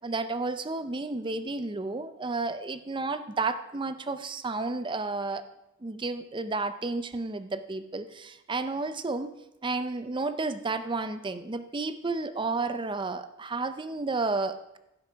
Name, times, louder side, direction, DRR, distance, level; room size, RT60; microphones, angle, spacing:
voice 1, 0.0-5.4 5.8-14.8, right 3 dB, 25° right, 11 dB, 0.5 m, -32 dB
16.0 x 5.9 x 5.1 m, 0.91 s
head